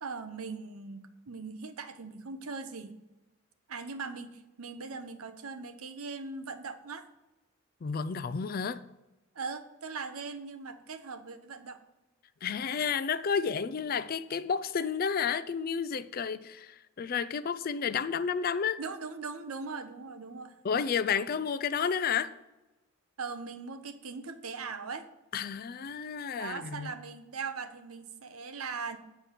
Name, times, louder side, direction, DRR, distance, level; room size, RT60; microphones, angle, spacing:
voice 1, 0.0-3.0 3.7-7.1 9.3-11.8 18.8-20.6 23.2-25.1 26.4-29.0, right 4 dB, 85° right, 0.8 m, -40 dB
voice 2, 7.8-8.8 12.4-18.8 20.6-22.3 25.3-26.9, left 6 dB, 45° left, 0.4 m, -31 dB
8.9 x 5.2 x 5.8 m
head